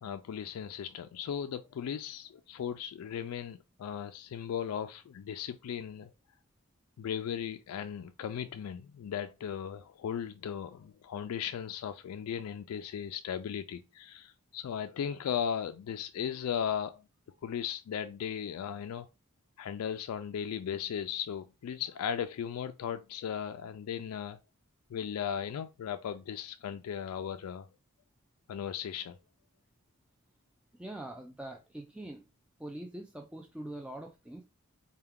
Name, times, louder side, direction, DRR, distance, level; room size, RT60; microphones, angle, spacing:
voice 1, 0.0-6.1 7.0-17.0 17.4-19.1 19.6-24.4 24.9-27.7 28.5-29.2, left 8 dB, 75° left, 0.3 m, -37 dB
voice 2, 30.7-32.2 32.6-34.4, right 1 dB, 5° right, 0.3 m, -43 dB
4.4 x 2.2 x 3.5 m
head